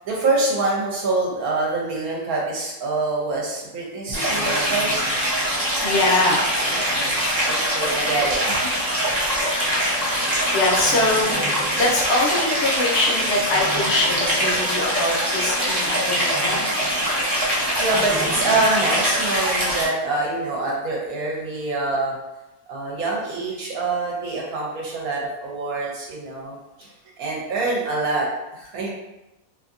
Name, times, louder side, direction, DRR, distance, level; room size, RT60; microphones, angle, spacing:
voice 1, 0.0-4.9 6.6-8.6 17.8-22.2 22.7-28.9, right 3 dB, 75° right, -3 dB, 1.1 m, -25 dB
Stream, 4.1-19.8, equal, 20° right, 0.6 m, -23 dB
voice 2, 5.8-6.5 10.2-17.1, left 2 dB, 60° left, -3 dB, 0.9 m, -23 dB
2.8 x 2.5 x 2.4 m, 0.95 s
omnidirectional pair, 1.6 m